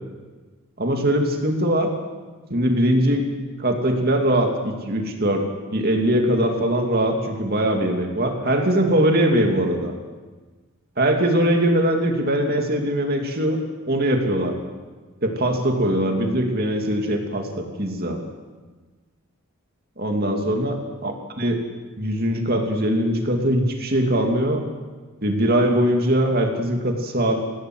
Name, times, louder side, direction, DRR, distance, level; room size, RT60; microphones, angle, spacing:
voice 1, 0.8-1.9 2.5-3.3 3.6-9.9 11.0-13.6 13.9-14.6 15.2-18.2 20.0-21.6 22.0-24.6 25.2-27.4, right 1 dB, 45° right, 3 dB, 2.6 m, -21 dB
22.0 x 16.5 x 7.9 m, 1.3 s
head